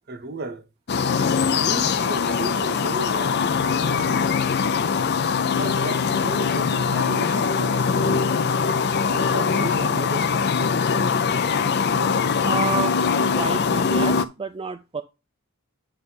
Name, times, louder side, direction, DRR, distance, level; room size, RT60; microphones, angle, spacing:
voice 1, 0.1-0.6 1.6-4.5 5.5-8.2 9.1-10.6, right 2 dB, 50° right, 0.9 m, -34 dB
sound 1, 0.9-14.3, left 5 dB, 50° left, 0.5 m, -22 dB
voice 2, 12.4-15.0, right 5 dB, 25° right, 0.4 m, -30 dB
9.4 x 3.3 x 5.5 m
head